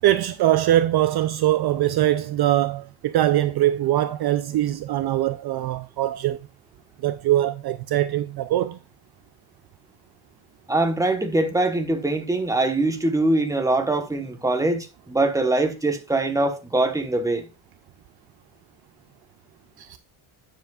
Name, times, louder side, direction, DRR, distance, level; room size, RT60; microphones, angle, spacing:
voice 1, 0.0-6.4 7.0-8.8 19.8-20.0, right 13 dB, 50° right, 0.5 m, -22 dB
voice 2, 10.7-17.5, right 2 dB, 5° right, 1.1 m, -23 dB
9.1 x 7.2 x 2.4 m
cardioid pair, 145°, 49 cm